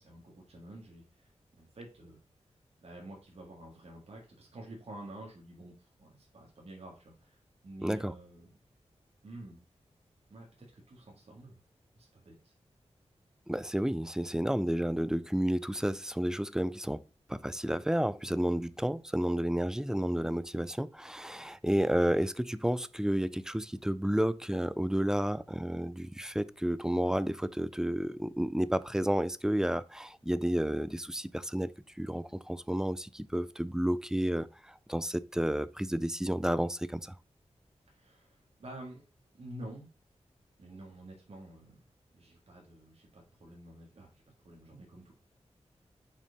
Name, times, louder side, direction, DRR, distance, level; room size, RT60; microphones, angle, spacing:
voice 1, 0.0-2.2 2.8-8.5 9.2-9.6 10.3-11.6 12.0-12.5 37.9-39.0 39.3-39.9 40.6-41.9 42.1-45.1, right 1 dB, 65° right, 1.9 m, -49 dB
voice 2, 7.8-8.1 13.5-17.0 17.3-31.7 32.0-37.2, equal, 5° right, 0.4 m, -31 dB
6.1 x 4.4 x 4.0 m
wide cardioid pair, 90°, 12 cm